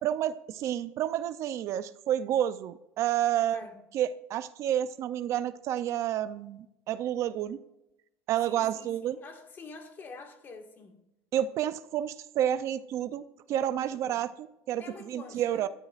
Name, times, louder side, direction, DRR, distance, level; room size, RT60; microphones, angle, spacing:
voice 1, 0.0-3.6 3.9-7.6 8.3-9.2 11.3-13.2 13.5-15.7, right 11 dB, 50° right, 0.5 m, -30 dB
voice 2, 3.3-3.8 8.4-11.0 13.9-14.2 14.8-15.7, left 4 dB, 30° left, 1.8 m, -47 dB
19.0 x 12.5 x 2.5 m
cardioid pair, 135°, 6 cm